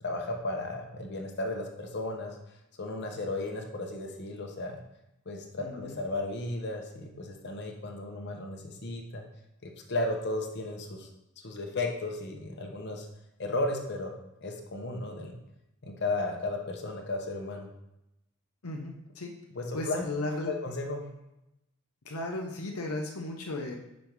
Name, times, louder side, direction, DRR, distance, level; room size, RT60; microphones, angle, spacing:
voice 1, 0.0-2.4 2.8-4.8 5.3-9.2 9.6-11.1 11.4-13.1 13.4-14.1 14.4-15.4 15.8-17.7 19.5-20.0 20.4-21.1, left 2 dB, 50° left, 2 dB, 1.0 m, -34 dB
voice 2, 5.6-6.0 18.6-19.3 19.7-20.5 22.0-23.8, left 2 dB, 80° left, 2 dB, 0.8 m, -35 dB
5.4 x 5.2 x 4.6 m, 0.89 s
head